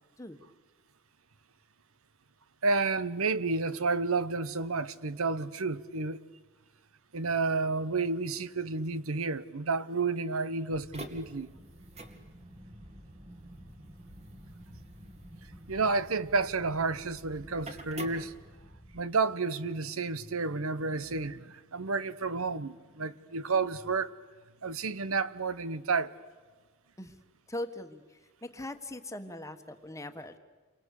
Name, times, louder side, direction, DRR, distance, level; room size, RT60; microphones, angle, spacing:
voice 1, 2.6-6.2 7.1-11.5 15.7-18.3 18.9-24.1 24.6-26.1, right 4 dB, 75° right, 1.0 m, -31 dB
sound 1, 10.7-19.0, right 1 dB, 30° right, 2.3 m, -47 dB
voice 2, 27.5-30.4, left 1 dB, 15° left, 1.5 m, -41 dB
29.5 x 24.0 x 8.5 m
head